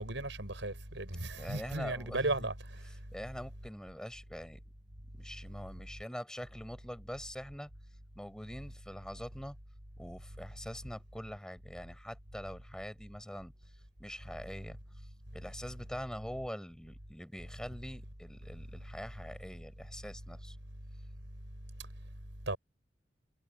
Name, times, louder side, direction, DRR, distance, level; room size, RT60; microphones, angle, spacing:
voice 1, 0.0-2.5 22.5-22.6, right 2 dB, 75° right, 7.7 m, -35 dB
voice 2, 1.4-2.3 3.1-4.6 5.2-7.7 8.2-9.6 10.0-13.5 14.0-14.8 15.3-20.6, equal, 5° left, 7.4 m, -44 dB
head